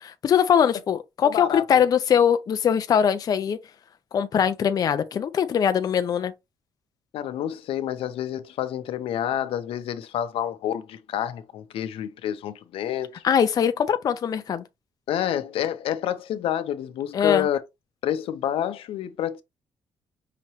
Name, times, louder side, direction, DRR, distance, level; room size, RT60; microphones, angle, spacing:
voice 1, 0.0-3.6 4.1-6.3 13.2-14.6 17.1-17.5, left 8 dB, 40° left, 0.4 m, -22 dB
voice 2, 1.2-1.9 7.1-13.2 15.1-17.6 18.0-19.4, left 10 dB, 85° left, 0.7 m, -28 dB
5.8 x 3.0 x 2.9 m
cardioid pair, 145°, 9 cm